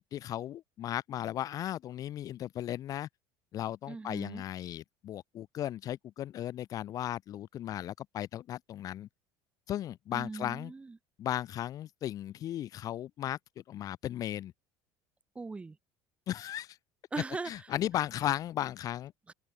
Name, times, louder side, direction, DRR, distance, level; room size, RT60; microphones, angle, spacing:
voice 1, 0.0-3.1 3.5-9.1 9.7-10.7 11.2-13.4 13.7-14.5 16.3-16.8 17.5-19.1, left 12 dB, 40° left, 1.3 m, -36 dB
voice 2, 3.9-4.4 10.1-11.0 15.3-15.8 17.1-17.7 19.3-19.4, right 3 dB, 10° right, 3.2 m, -39 dB
open air
cardioid pair, 155°, 9 cm